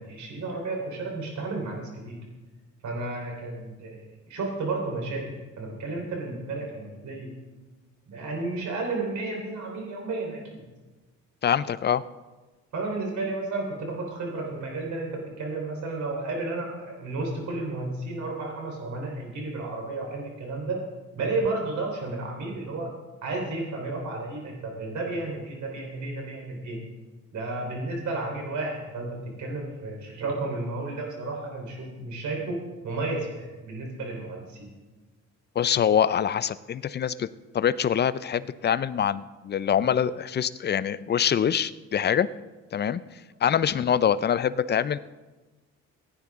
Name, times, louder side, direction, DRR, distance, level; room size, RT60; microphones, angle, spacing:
voice 1, 0.0-2.2 2.8-7.3 8.1-10.7 12.7-20.8 21.2-22.9 23.2-26.8 27.3-34.7, right 2 dB, 70° right, 0 dB, 3.7 m, -32 dB
voice 2, 11.4-12.0 35.6-37.3 37.5-42.3 42.7-43.0 43.4-45.0, left 8 dB, 35° left, 16 dB, 0.5 m, -24 dB
17.5 x 9.5 x 3.6 m, 1.2 s
cardioid pair, 90°, 30 cm